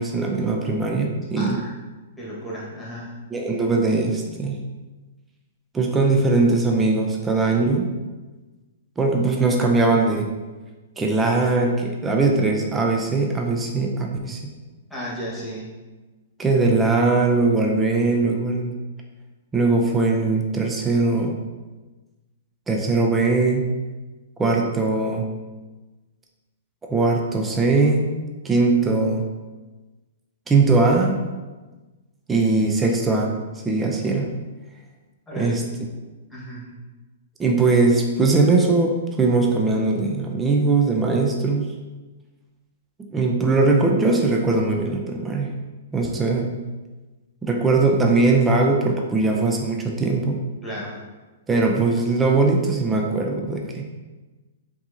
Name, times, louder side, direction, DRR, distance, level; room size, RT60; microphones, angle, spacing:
voice 1, 0.0-1.6 3.3-4.6 5.7-7.9 9.0-10.3 11.0-14.4 16.4-18.8 19.5-21.4 22.7-23.6 24.4-25.3 26.9-28.1 28.4-29.3 30.5-31.2 32.3-33.3 33.6-34.3 35.4-35.6 37.4-41.7 43.0-45.5 45.9-46.5 47.4-50.4 51.5-53.8, right 3 dB, 15° right, 1 dB, 0.4 m, -20 dB
voice 2, 1.4-1.7 2.2-3.1 14.9-15.7 35.3-35.5 36.3-36.8 50.6-51.0, equal, 5° left, -6 dB, 1.3 m, -34 dB
4.5 x 2.8 x 2.6 m, 1.2 s
hypercardioid pair, 135°, 0 cm